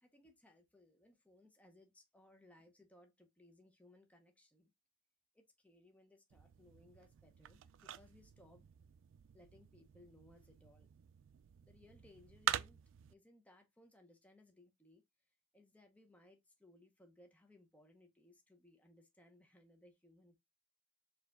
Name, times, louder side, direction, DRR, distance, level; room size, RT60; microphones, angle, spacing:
voice 1, 0.0-4.7 5.3-8.7 9.3-10.9 11.6-12.8 13.1-15.0 15.5-20.4, left 1 dB, 5° left, 0.7 m, -65 dB
sound 1, 6.3-13.1, right 10 dB, 75° right, 0.3 m, -46 dB
4.5 x 2.8 x 3.5 m
head